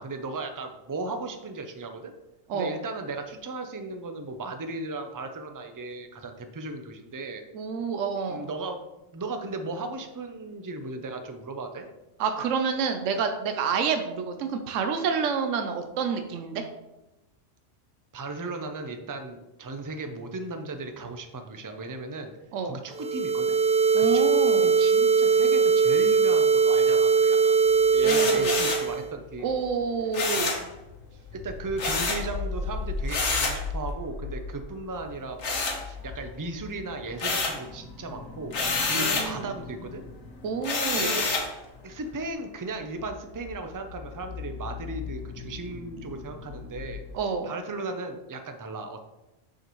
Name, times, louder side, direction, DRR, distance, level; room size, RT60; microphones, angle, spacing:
voice 1, 0.0-2.2 2.5-7.4 8.3-8.8 9.1-11.9 18.1-22.3 22.6-23.6 24.0-27.6 27.9-29.6 31.3-38.6 38.9-40.0 40.9-41.4 41.8-49.0, right 2 dB, 30° right, 6 dB, 0.3 m, -36 dB
voice 2, 7.5-8.4 12.2-16.7 22.5-22.8 23.9-24.7 28.0-28.5 29.4-30.6 39.0-39.5 40.4-41.2 47.1-47.5, right 5 dB, 75° right, 6 dB, 1.0 m, -28 dB
sound 1, 22.9-29.1, right 5 dB, 50° right, 0.9 m, -21 dB
sound 2, 28.0-28.9 30.1-30.7 31.8-32.3 33.1-33.6 35.4-36.3 36.7-37.7 38.5-39.3 40.6-41.5, left 3 dB, 65° left, 1.4 m, -28 dB
sound 3, 29.4-47.2, left 4 dB, 80° left, 1.2 m, -40 dB
6.7 x 6.4 x 3.1 m, 0.98 s
omnidirectional pair, 1.3 m